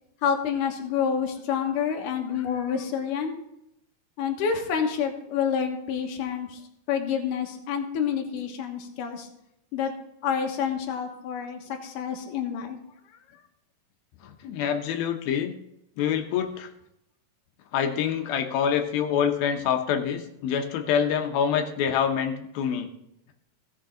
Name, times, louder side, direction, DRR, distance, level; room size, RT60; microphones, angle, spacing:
voice 1, 0.2-3.3 4.2-6.6 6.9-9.3 9.7-9.9 10.2-12.8, left 7 dB, 65° left, 3 dB, 2.7 m, -28 dB
voice 2, 14.2-15.5 16.0-16.7 17.7-22.9, left 8 dB, 85° left, 6 dB, 2.8 m, -26 dB
16.5 x 6.7 x 3.8 m, 0.81 s
omnidirectional pair, 4.2 m